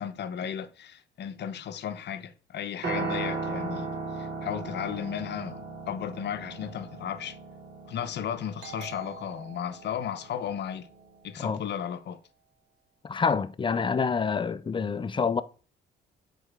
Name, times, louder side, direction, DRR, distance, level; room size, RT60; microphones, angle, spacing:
voice 1, 0.0-3.9 4.1-7.4 7.9-10.9 11.2-12.2, left 9 dB, 60° left, 0.7 m, -35 dB
Piano, 2.8-11.1, right 3 dB, 50° right, 2.3 m, -37 dB
Doorbell, 8.6-12.0, right 6 dB, 85° right, 1.7 m, -49 dB
voice 2, 13.0-15.4, left 5 dB, 25° left, 0.4 m, -27 dB
6.9 x 4.2 x 3.5 m
cardioid pair, 90°, 20 cm